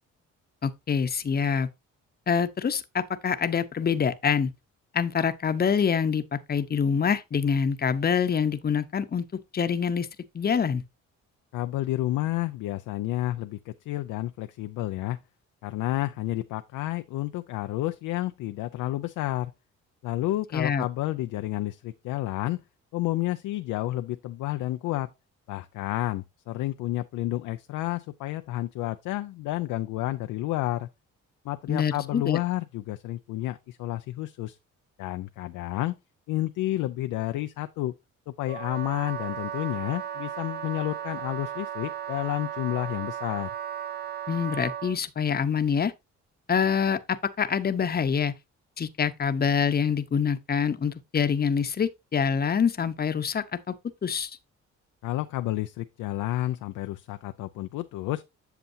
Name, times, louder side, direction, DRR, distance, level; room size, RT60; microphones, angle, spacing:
voice 1, 0.6-1.7 2.3-4.5 4.9-9.3 9.5-10.1 10.3-10.8 20.5-20.8 31.7-32.4 44.3-45.9 46.5-48.3 48.8-53.7 54.0-54.3, left 6 dB, 30° left, 0.8 m, -25 dB
voice 2, 11.5-15.2 15.6-19.5 20.0-22.6 22.9-25.1 25.5-30.9 31.4-34.6 35.0-35.9 36.3-37.9 38.3-43.5 55.0-58.2, left 16 dB, 90° left, 0.5 m, -30 dB
Wind instrument woodwind instrument, 38.5-45.0, right 10 dB, 35° right, 0.7 m, -35 dB
8.1 x 6.8 x 2.7 m
cardioid pair, 90°, 30 cm